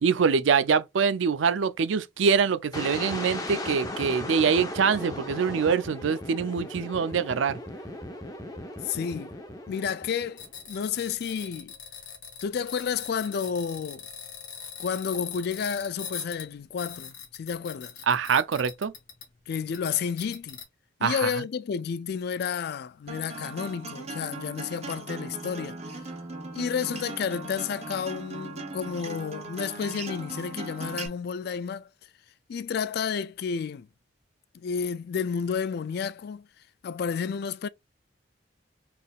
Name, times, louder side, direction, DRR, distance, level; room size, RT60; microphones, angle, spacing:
voice 1, 0.0-7.6 18.1-18.9 21.0-21.3, right 6 dB, 75° right, 0.5 m, -24 dB
sound 1, 2.7-10.6, left 1 dB, 20° left, 0.8 m, -37 dB
voice 2, 8.8-9.3 9.7-11.7 12.4-14.1 14.8-18.0 19.5-20.6 21.0-25.8 26.5-31.9 32.5-33.9 34.5-36.5 36.8-37.7, left 6 dB, 55° left, 0.3 m, -31 dB
sound 2, 10.4-19.4 19.7-20.6, left 7 dB, 85° left, 1.6 m, -42 dB
Acoustic guitar, 23.1-31.1, right 2 dB, 35° right, 0.9 m, -39 dB
4.3 x 3.5 x 2.4 m
head